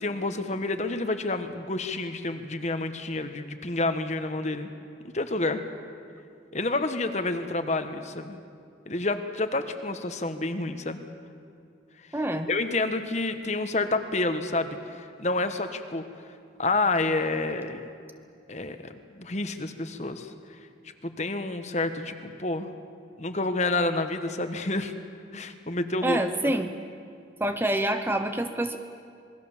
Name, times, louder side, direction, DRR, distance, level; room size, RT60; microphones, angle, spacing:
voice 1, 0.0-4.7 5.1-5.6 6.5-8.4 8.9-11.0 12.5-16.0 16.6-17.9 18.5-18.8 19.1-20.3 21.0-22.7 23.2-24.9 25.3-26.5, left 2 dB, 40° left, 8 dB, 1.3 m, -29 dB
voice 2, 12.1-12.5 26.0-26.7 27.4-28.8, right 1 dB, 10° right, 7 dB, 0.8 m, -26 dB
27.0 x 21.0 x 7.3 m, 2.4 s
head